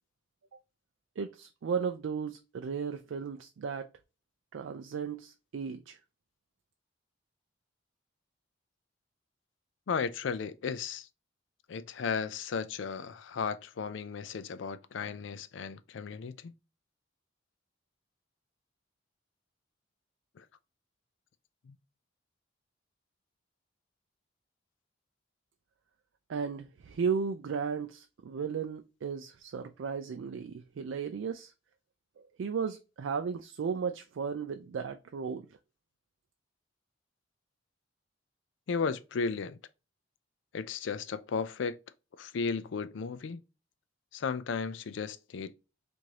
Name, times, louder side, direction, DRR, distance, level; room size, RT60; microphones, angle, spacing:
voice 1, 1.2-3.9 4.5-6.0 26.3-31.5 32.2-35.5, right 6 dB, 75° right, 0.4 m, -35 dB
voice 2, 9.9-11.1 11.7-16.5 20.4-20.5 21.7-21.8 38.7-39.6 40.5-41.8 42.2-43.4 44.1-45.5, left 5 dB, 70° left, 0.4 m, -35 dB
4.6 x 2.6 x 2.8 m
head